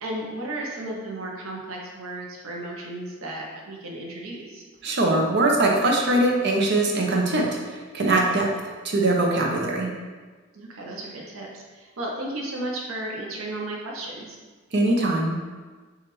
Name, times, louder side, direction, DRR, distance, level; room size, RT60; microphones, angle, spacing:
voice 1, 0.0-4.6 10.5-14.4, right 1 dB, 85° right, -2 dB, 0.8 m, -34 dB
voice 2, 4.8-8.5 8.8-9.9 14.7-15.4, right 2 dB, 55° right, 0 dB, 0.7 m, -22 dB
6.1 x 2.4 x 3.0 m, 1.4 s
head